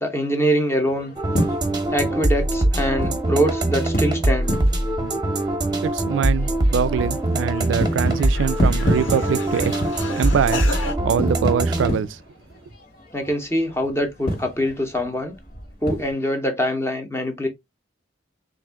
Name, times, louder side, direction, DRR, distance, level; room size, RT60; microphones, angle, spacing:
voice 1, 0.0-1.1 1.9-4.6 13.1-15.3 15.8-17.5, equal, 15° left, 0.8 m, -23 dB
sound 1, 0.8-16.1, equal, 50° left, 1.4 m, -31 dB
sound 2, 1.2-11.9, right 1 dB, 25° right, 0.8 m, -22 dB
voice 2, 5.8-9.7 10.2-10.6 11.0-12.2, right 7 dB, 75° right, 0.3 m, -23 dB
sound 3, 6.6-6.7 7.1-10.9, left 3 dB, 90° left, 1.4 m, -34 dB
3.5 x 2.5 x 3.4 m
head